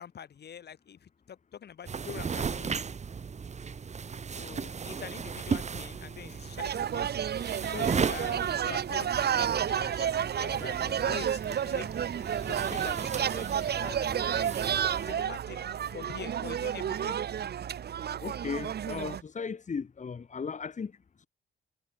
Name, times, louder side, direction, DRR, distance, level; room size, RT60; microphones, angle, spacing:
voice 1, 0.0-2.8 4.3-7.1 7.7-11.9 12.5-14.5 15.0-17.2, left 8 dB, 55° left, 4.8 m, -44 dB
sound 1, 1.8-15.1, right 6 dB, 35° right, 1.4 m, -36 dB
sound 2, 6.6-19.2, right 9 dB, 55° right, 1.5 m, -31 dB
voice 2, 18.2-21.3, left 5 dB, 35° left, 3.5 m, -36 dB
cardioid pair, 90°, 20 cm